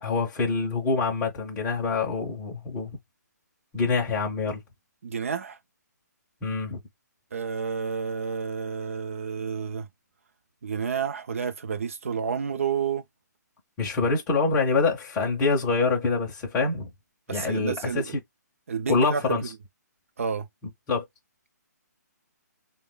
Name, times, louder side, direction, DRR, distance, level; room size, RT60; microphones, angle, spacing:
voice 1, 0.0-2.9 3.7-4.6 6.4-6.8 13.8-16.9 17.3-18.0 18.9-19.4 20.9-21.0, left 4 dB, 10° left, 0.6 m, -25 dB
voice 2, 5.0-5.6 7.3-9.9 10.6-13.0 17.3-18.1 18.7-19.4 20.2-20.5, right 6 dB, 50° right, 0.6 m, -30 dB
3.8 x 2.2 x 3.7 m
hypercardioid pair, 175°, 10 cm